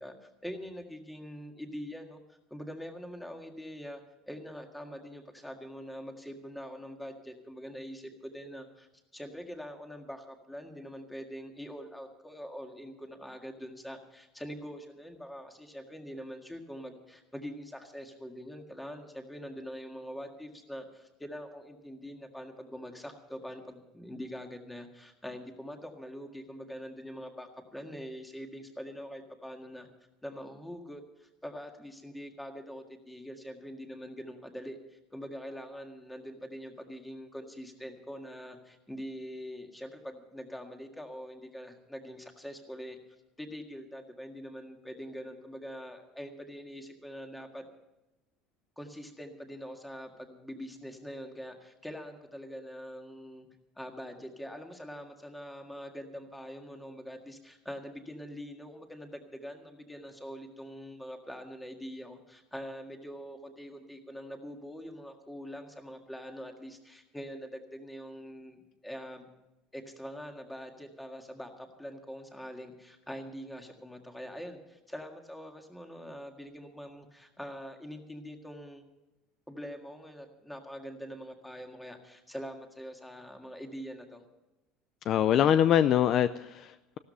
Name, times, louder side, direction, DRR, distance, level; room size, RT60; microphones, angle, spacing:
voice 1, 0.0-2.2 2.5-29.9 30.2-43.0 43.4-47.6 48.8-53.5 53.8-69.3 69.7-78.8 79.5-84.2, equal, 5° left, 4 dB, 1.8 m, -44 dB
voice 2, 85.1-87.0, left 10 dB, 40° left, 13 dB, 0.5 m, -24 dB
15.5 x 13.0 x 5.6 m, 0.98 s
cardioid pair, 155°, 0 cm